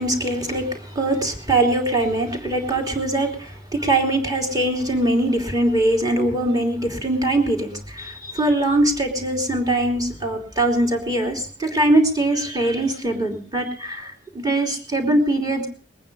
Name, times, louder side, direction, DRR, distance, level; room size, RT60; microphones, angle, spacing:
voice 1, 0.0-15.7, right 1 dB, 20° right, 1 dB, 3.0 m, -22 dB
21.0 x 9.3 x 5.3 m, 0.43 s
head